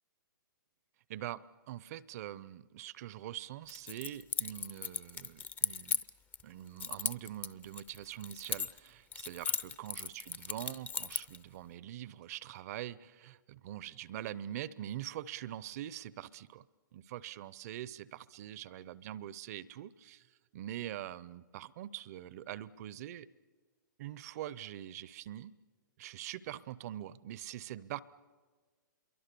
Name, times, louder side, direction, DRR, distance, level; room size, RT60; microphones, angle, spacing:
voice 1, 1.1-6.0 6.4-16.6 16.9-20.3 20.5-23.3 24.0-25.5 26.0-28.0, right 12 dB, 50° right, 20 dB, 0.7 m, -44 dB
Keys jangling, 3.7-6.4 6.8-8.9 9.1-11.4, left 6 dB, 15° left, 0.6 m, -36 dB
26.5 x 23.0 x 6.9 m, 1.5 s
hypercardioid pair, 130°, 11 cm